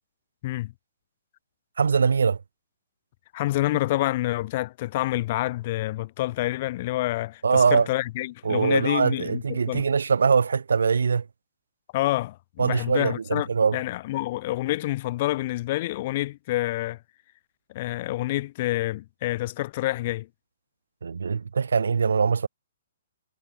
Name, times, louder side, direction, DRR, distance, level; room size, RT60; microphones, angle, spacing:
voice 1, 1.8-2.4 7.4-7.9 8.4-11.3 12.6-13.8 21.0-22.5, right 5 dB, 75° right, 0.4 m, -22 dB
voice 2, 3.3-9.8 11.9-17.0 17.7-20.3, left 17 dB, 45° left, 1.7 m, -28 dB
hypercardioid pair, 130°, 0 cm